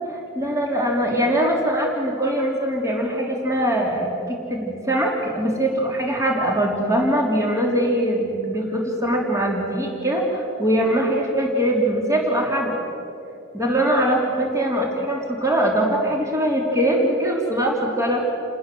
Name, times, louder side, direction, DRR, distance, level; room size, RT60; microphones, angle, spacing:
voice 1, 0.0-12.7 13.5-18.2, right 1 dB, 15° right, -1 dB, 3.5 m, -22 dB
29.5 x 19.5 x 7.8 m, 2.8 s
head